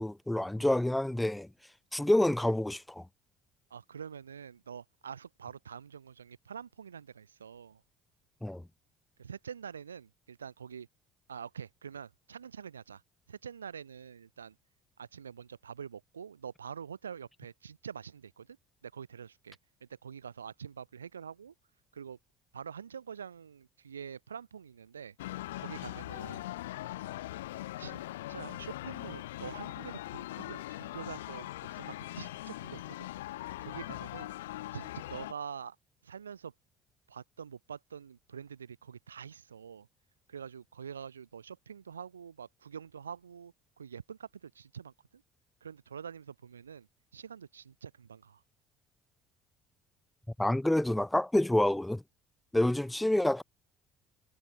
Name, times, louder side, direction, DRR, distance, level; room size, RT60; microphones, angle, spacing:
voice 1, 0.0-1.5 1.9-3.0 8.4-8.6 50.4-52.0 52.5-53.4, left 1 dB, 5° left, 1.9 m, -28 dB
voice 2, 3.7-7.8 9.2-10.9 11.3-13.0 13.3-14.5 15.0-18.6 18.8-21.5 21.9-22.2 22.5-25.2 25.6-26.5 27.5-33.1 33.6-34.3 34.7-35.8 36.0-36.5 37.1-39.9 40.3-45.2 45.6-46.9 47.1-48.4, right 7 dB, 80° right, 1.6 m, -46 dB
sound 1, 25.2-35.3, left 16 dB, 70° left, 0.9 m, -41 dB
figure-of-eight pair, 55°, 0 cm